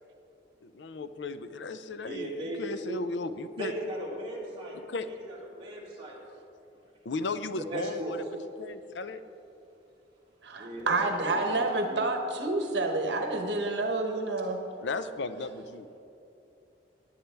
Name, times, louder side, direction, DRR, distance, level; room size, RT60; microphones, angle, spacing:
voice 1, 0.6-2.3 2.6-3.7 4.9-5.1 7.0-8.2 8.6-9.2 14.8-16.0, left 3 dB, 80° left, 11 dB, 0.6 m, -35 dB
voice 2, 2.0-3.1 3.6-4.8 5.0-6.2 7.5-8.2 10.5-12.0, right 1 dB, 30° right, -6 dB, 2.8 m, -37 dB
voice 3, 10.4-14.6, right 2 dB, 75° right, 3 dB, 1.2 m, -29 dB
17.5 x 10.0 x 3.4 m, 2.8 s
head